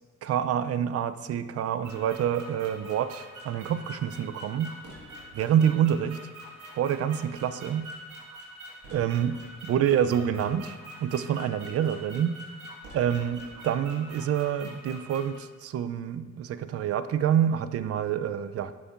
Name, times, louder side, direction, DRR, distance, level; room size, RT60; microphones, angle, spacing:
voice 1, 0.2-4.7 5.3-6.2 6.8-7.9 8.9-12.4 12.9-18.7, right 9 dB, 55° right, 12 dB, 0.4 m, -27 dB
sound 1, 1.8-15.4, equal, 80° right, 1.8 m, -45 dB
11.5 x 5.2 x 2.5 m, 1.4 s
cardioid pair, 90°, 30 cm